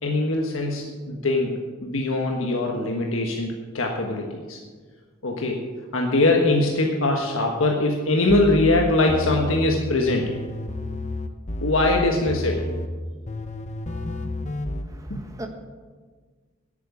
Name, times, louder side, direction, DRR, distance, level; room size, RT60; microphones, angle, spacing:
voice 1, 0.0-1.5 1.8-4.6 5.2-5.6 5.9-10.3 11.6-12.6 15.1-15.2, left 2 dB, 75° left, 1 dB, 1.4 m, -22 dB
sound 1, 8.3-9.7 10.1-12.9 13.3-14.8, left 1 dB, 35° left, 0.8 m, -30 dB
voice 2, 14.9-15.5, right 1 dB, 15° right, 4 dB, 1.4 m, -39 dB
11.0 x 9.1 x 8.3 m, 1.5 s
head